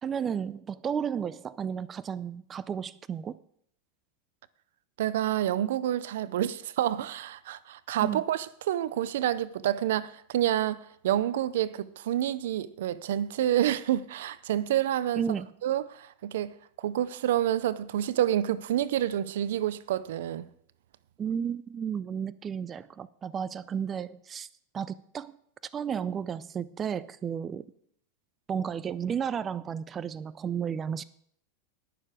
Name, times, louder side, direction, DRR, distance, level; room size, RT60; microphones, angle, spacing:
voice 1, 0.0-3.4 8.0-8.2 15.1-15.5 21.2-24.5 24.7-25.4 25.6-27.6 28.5-31.0, right 7 dB, 25° right, 0.5 m, -33 dB
voice 2, 5.0-15.2 15.6-20.5, right 11 dB, 75° right, 0.6 m, -28 dB
19.0 x 6.8 x 4.9 m
hypercardioid pair, 110°, 0 cm